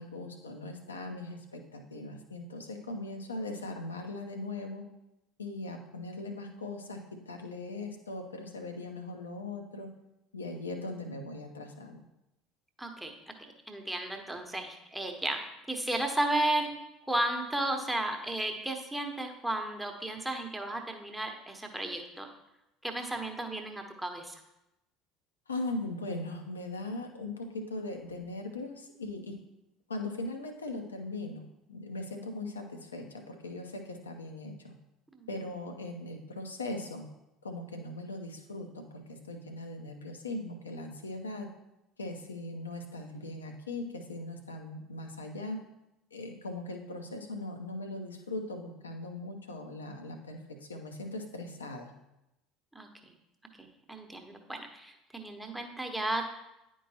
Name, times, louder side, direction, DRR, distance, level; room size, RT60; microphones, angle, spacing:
voice 1, 0.0-4.9 5.4-9.9 10.3-12.1 25.5-29.4 29.9-31.4 31.7-34.7 35.3-37.1 37.4-41.5 42.0-45.6 46.1-51.9, left 2 dB, 80° left, 5 dB, 0.7 m, -39 dB
voice 2, 12.8-13.1 13.4-15.4 15.7-16.7 17.1-22.3 22.8-24.4 35.1-35.3 52.7-52.9 53.6-56.3, right 1 dB, 5° right, 3 dB, 0.9 m, -34 dB
9.9 x 4.6 x 2.9 m, 0.90 s
figure-of-eight pair, 65°, 0 cm